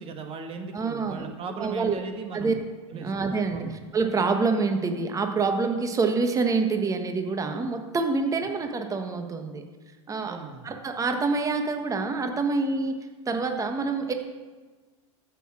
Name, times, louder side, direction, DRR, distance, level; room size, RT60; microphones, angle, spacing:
voice 1, 0.0-2.6 2.9-3.8 10.2-10.8, right 4 dB, 35° right, 5 dB, 1.5 m, -38 dB
voice 2, 0.7-1.3 1.6-2.0 2.3-2.5 2.9-9.6 10.1-10.4 10.6-12.9 13.3-14.1, right 4 dB, 20° right, 6 dB, 1.4 m, -26 dB
14.5 x 6.3 x 6.1 m, 1.3 s
hypercardioid pair, 90°, 16 cm